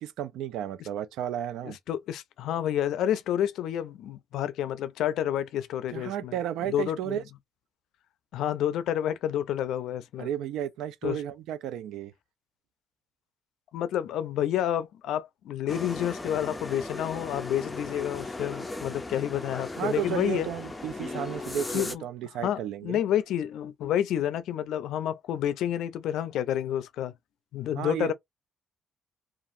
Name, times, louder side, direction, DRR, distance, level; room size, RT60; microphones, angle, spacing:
voice 1, 0.0-1.8 5.9-7.2 10.2-12.1 19.8-23.0 27.8-28.1, right 10 dB, 90° right, 0.3 m, -33 dB
voice 2, 1.6-6.4 6.6-7.2 8.3-10.3 11.0-11.2 13.7-20.5 21.1-21.2 21.7-22.0 22.4-27.1 27.5-28.1, left 11 dB, 85° left, 0.4 m, -29 dB
sound 1, 15.7-21.9, left 2 dB, 20° left, 0.5 m, -37 dB
2.7 x 2.4 x 2.5 m
cardioid pair, 90°, 0 cm